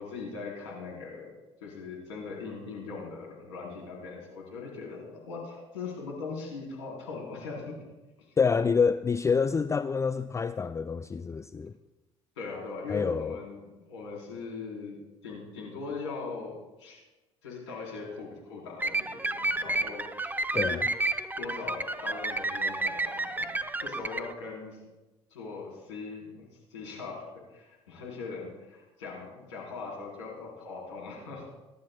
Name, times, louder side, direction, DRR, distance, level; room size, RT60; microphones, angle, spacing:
voice 1, 0.0-1.3 1.6-7.8 8.3-8.4 12.4-13.6 13.9-17.0 17.4-20.8 21.4-23.5 23.8-24.8 25.3-31.5, left 4 dB, 85° left, 3.8 m, -40 dB
voice 2, 8.4-11.7 12.9-13.4 20.5-20.9, left 5 dB, 20° left, 0.4 m, -27 dB
sound 1, 18.8-24.3, right 2 dB, 10° right, 0.8 m, -31 dB
22.0 x 12.0 x 2.3 m
hypercardioid pair, 60°, 15 cm